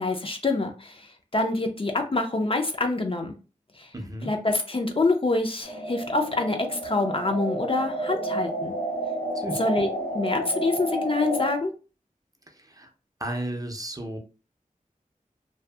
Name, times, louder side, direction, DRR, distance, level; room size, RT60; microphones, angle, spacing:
voice 1, 0.0-3.3 3.8-3.9 4.3-8.7 9.6-9.9 10.1-11.7, left 2 dB, 40° left, 4 dB, 0.4 m, -26 dB
voice 2, 3.9-4.3 9.3-9.6 12.5-12.9 13.2-14.2, right 1 dB, 25° right, 2 dB, 0.5 m, -33 dB
sound 1, 5.6-11.5, right 1 dB, 70° left, 0.7 m, -31 dB
2.6 x 2.3 x 2.2 m, 0.35 s
wide cardioid pair, 60°, 15 cm